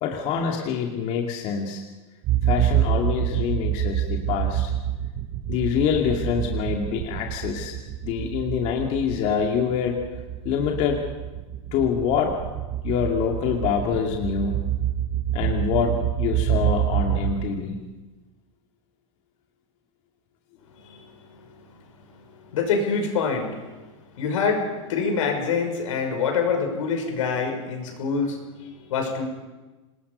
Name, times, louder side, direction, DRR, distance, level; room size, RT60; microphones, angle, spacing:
voice 1, 0.0-1.8 2.4-4.7 5.5-7.8 8.0-10.0 10.4-11.0 11.7-12.3 12.8-14.6 15.3-17.8, left 7 dB, 45° left, 1 dB, 2.4 m, -25 dB
sound 1, 2.2-17.9, right 11 dB, 35° right, 1.0 m, -27 dB
voice 2, 20.7-21.6 22.1-29.3, left 5 dB, 80° left, 4 dB, 5.9 m, -26 dB
26.5 x 20.0 x 5.5 m, 1.2 s
supercardioid pair, 140°, 16 cm